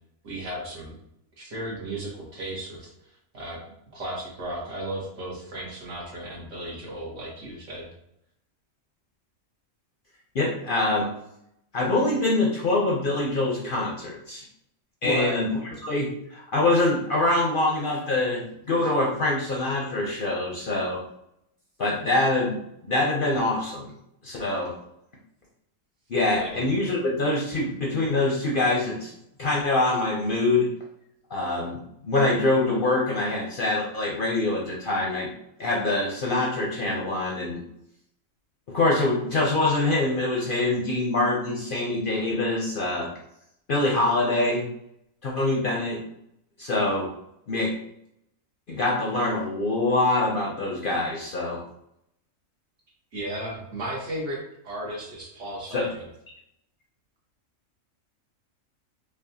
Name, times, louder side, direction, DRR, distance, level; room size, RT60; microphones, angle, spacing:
voice 1, 0.2-1.0 1.4-2.9 3.3-3.6 3.9-7.9 15.0-15.4 26.3-26.6 53.1-56.1, right 1 dB, 65° right, -4 dB, 1.5 m, -34 dB
voice 2, 10.3-11.1 11.7-14.4 15.0-15.5 15.8-21.0 21.8-23.9 24.2-24.7 26.1-29.1 29.4-30.7 31.3-35.3 35.6-37.6 38.7-43.1 43.7-44.6 45.2-46.0 46.6-47.1 47.5-47.7 48.7-51.6 55.7-55.9, left 2 dB, 55° left, -2 dB, 0.6 m, -24 dB
5.0 x 2.3 x 2.7 m, 0.77 s
omnidirectional pair, 1.4 m